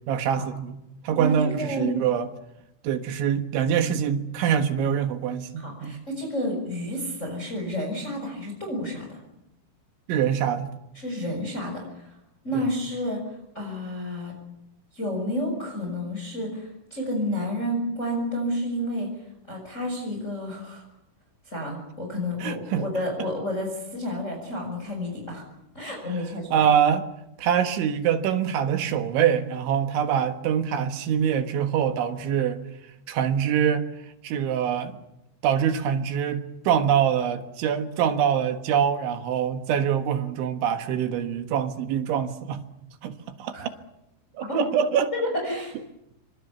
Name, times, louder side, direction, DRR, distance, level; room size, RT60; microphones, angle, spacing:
voice 1, 0.1-2.3 2.8-6.0 10.1-10.7 12.5-12.7 22.4-22.8 26.5-27.1 27.4-32.6 33.1-33.9 34.2-35.0 35.4-42.6 43.0-43.7 44.4-45.1, right 8 dB, 75° right, 7 dB, 3.7 m, -24 dB
voice 2, 1.2-1.9 5.6-9.2 10.9-12.1 12.4-14.3 14.9-19.1 19.5-20.8 21.5-25.4 25.7-26.7 43.5-43.6 44.5-44.7 45.2-45.8, equal, 15° left, 1 dB, 6.0 m, -30 dB
28.5 x 25.5 x 7.0 m, 0.85 s
omnidirectional pair, 5.7 m